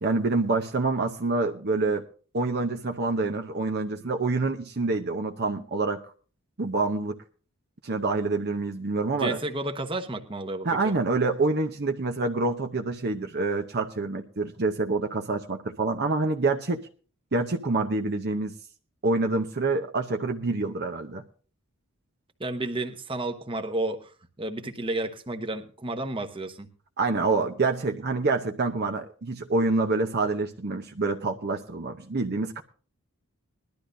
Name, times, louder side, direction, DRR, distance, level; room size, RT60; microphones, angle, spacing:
voice 1, 0.0-2.0 2.3-6.0 6.6-7.2 7.8-9.4 10.6-16.8 17.3-18.5 19.0-21.2 27.0-32.6, right 3 dB, 50° right, 4 dB, 0.8 m, -27 dB
voice 2, 9.2-10.9 22.4-24.1 24.4-26.7, right 2 dB, 25° right, 7 dB, 1.0 m, -31 dB
20.5 x 12.0 x 2.7 m, 0.39 s
head